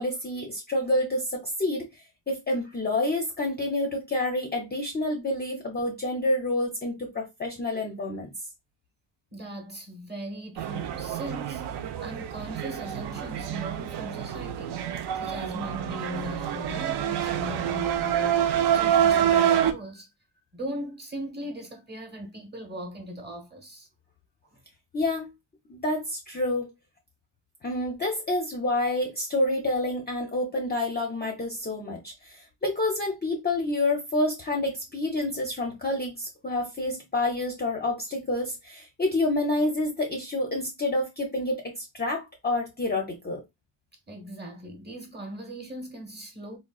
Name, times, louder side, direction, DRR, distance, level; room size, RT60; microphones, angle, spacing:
voice 1, 0.0-8.3 24.9-25.3 25.7-26.7 27.6-43.4, left 2 dB, 20° left, 0.5 m, -28 dB
voice 2, 9.3-20.1 20.5-23.9 44.1-46.6, equal, 20° right, 0.9 m, -39 dB
sound 1, 10.6-19.7, right 10 dB, 60° right, 0.5 m, -27 dB
3.6 x 2.1 x 2.3 m
cardioid pair, 130°, 46 cm